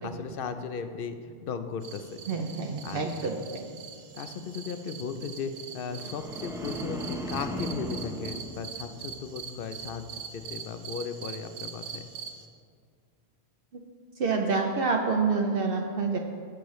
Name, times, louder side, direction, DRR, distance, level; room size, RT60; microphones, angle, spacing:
voice 1, 0.0-2.2 2.8-3.0 4.1-12.0, left 5 dB, 60° left, 9 dB, 0.7 m, -36 dB
sound 1, 1.8-12.5, right 6 dB, 85° right, 1.0 m, -43 dB
voice 2, 2.3-3.7 13.7-13.8 14.2-16.2, right 4 dB, 65° right, 2 dB, 0.8 m, -28 dB
sound 2, 5.9-9.3 9.7-10.1, equal, 5° right, 0.6 m, -37 dB
15.0 x 6.4 x 3.1 m, 2.1 s
omnidirectional pair, 1.1 m